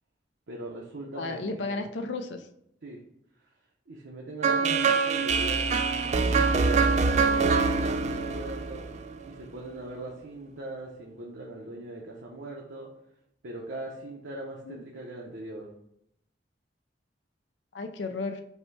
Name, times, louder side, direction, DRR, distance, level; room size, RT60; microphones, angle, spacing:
voice 1, 0.5-1.8 2.8-3.0 3.9-12.9 13.4-15.7, right 2 dB, 75° right, -2 dB, 0.7 m, -40 dB
voice 2, 1.2-2.5 4.6-4.8 14.6-14.8 17.7-18.4, left 3 dB, 75° left, 7 dB, 0.4 m, -34 dB
sound 1, 4.4-9.4, right 4 dB, 40° right, 0.3 m, -24 dB
5.4 x 2.2 x 4.5 m, 0.77 s
head